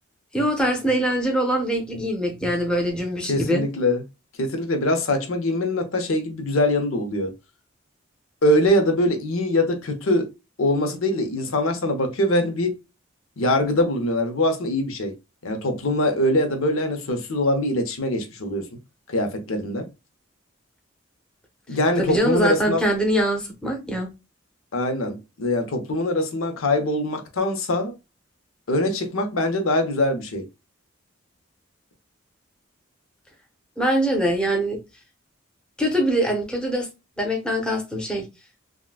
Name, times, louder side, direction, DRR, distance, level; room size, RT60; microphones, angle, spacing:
voice 1, 0.3-3.6 22.0-24.1 33.8-34.8 35.8-36.9 37.2-38.3, equal, 5° left, 0.7 m, -23 dB
voice 2, 3.3-4.0 4.4-7.3 8.4-10.3 10.6-12.7 13.4-15.1 15.4-18.7 19.1-19.9 21.7-22.8 24.7-27.9 28.7-30.4, left 1 dB, 85° left, 0.8 m, -23 dB
3.6 x 2.2 x 2.4 m
head